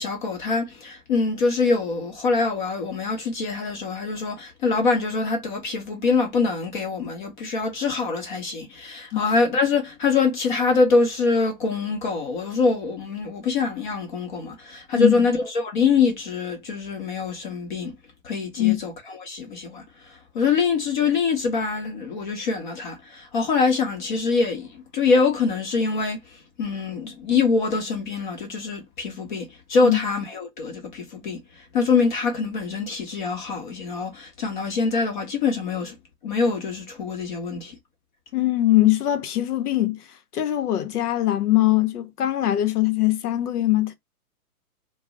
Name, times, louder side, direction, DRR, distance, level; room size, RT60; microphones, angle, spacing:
voice 1, 0.0-17.9 18.2-36.0 36.2-37.8, left 4 dB, 35° left, 0.6 m, -24 dB
voice 2, 14.9-15.2 18.6-18.8 29.8-30.0 38.3-40.0 40.3-43.9, left 15 dB, 90° left, 0.7 m, -21 dB
2.3 x 2.0 x 3.5 m
hypercardioid pair, 150°, 45 cm